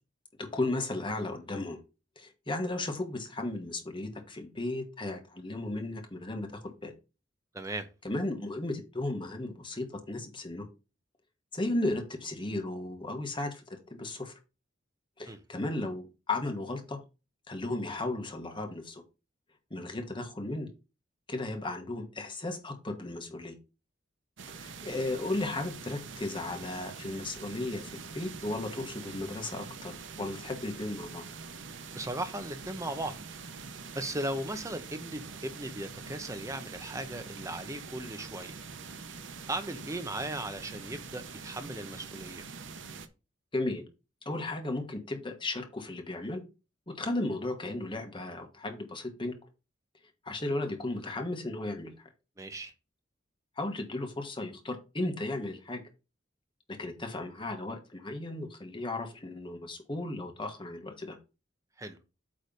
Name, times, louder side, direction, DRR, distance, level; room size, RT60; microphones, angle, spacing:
voice 1, 0.4-1.8 2.2-6.9 8.0-10.6 11.5-14.3 15.2-17.0 17.5-19.0 19.7-20.7 21.3-23.6 24.5-31.2 43.5-43.8 44.2-46.4 46.9-49.3 50.2-52.1 53.6-55.8 56.7-61.2, left 2 dB, 25° left, 1.4 m, -35 dB
voice 2, 7.5-7.9 15.3-15.4 31.9-33.2 33.9-38.6 39.5-42.5 52.4-52.7 61.8-62.0, right 1 dB, 15° right, 0.9 m, -37 dB
sound 1, 24.4-43.1, right 5 dB, 75° right, 0.9 m, -44 dB
8.7 x 3.3 x 5.3 m
head